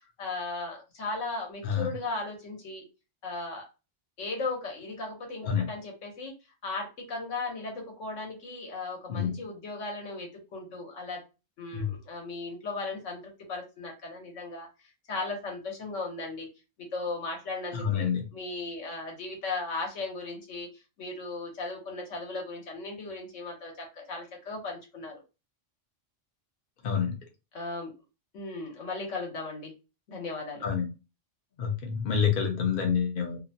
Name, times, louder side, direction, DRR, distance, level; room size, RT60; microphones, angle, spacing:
voice 1, 0.2-2.8 3.2-3.7 4.2-6.3 6.6-11.2 11.6-13.2 13.5-14.7 15.1-16.5 16.9-20.7 21.0-25.2 27.5-27.9 28.3-29.7 30.1-30.6, left 3 dB, 80° left, 1 dB, 1.3 m, -36 dB
voice 2, 17.7-18.2 26.8-27.2 30.6-30.9 31.6-33.4, left 7 dB, 55° left, 3 dB, 0.7 m, -27 dB
2.8 x 2.1 x 2.6 m, 0.29 s
omnidirectional pair, 1.3 m